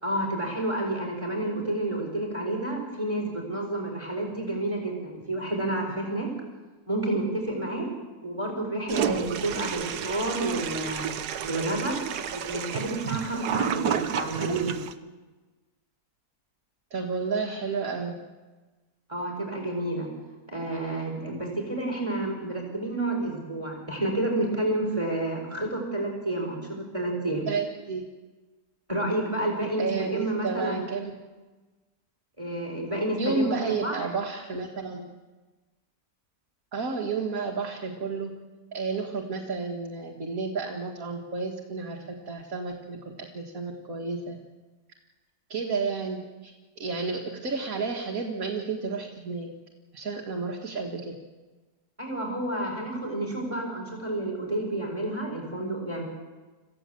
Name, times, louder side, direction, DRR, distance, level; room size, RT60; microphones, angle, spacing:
voice 1, 0.0-6.3 6.9-7.9 8.2-11.1 11.4-11.9 12.3-14.7 19.1-20.1 20.5-27.5 28.9-30.8 32.4-34.1 52.0-56.0, right 1 dB, 20° right, 1 dB, 4.4 m, -30 dB
Toilet flush, 8.9-14.9, right 9 dB, 80° right, 1.4 m, -31 dB
voice 2, 16.9-18.2 27.5-28.0 29.8-31.1 33.2-35.1 36.7-38.3 38.7-44.4 45.5-46.5 46.8-49.5 49.9-51.1, right 4 dB, 60° right, 0 dB, 2.1 m, -31 dB
27.5 x 15.5 x 7.6 m, 1.3 s
omnidirectional pair, 1.7 m